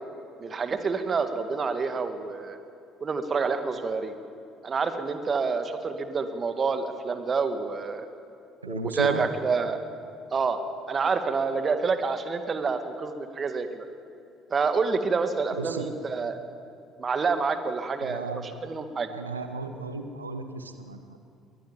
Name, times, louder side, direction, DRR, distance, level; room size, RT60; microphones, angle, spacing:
voice 1, 0.4-2.6 3.0-4.1 4.6-8.1 8.7-9.8 10.3-10.6 10.9-13.9 14.5-16.4 17.0-18.2 18.6-19.1, right 4 dB, 35° right, 9 dB, 2.1 m, -28 dB
voice 2, 8.6-9.3 15.6-15.9 18.0-18.7 19.1-21.2, right 3 dB, 85° right, 8 dB, 1.2 m, -35 dB
22.0 x 20.0 x 7.5 m, 2.7 s
figure-of-eight pair, 55°, 0 cm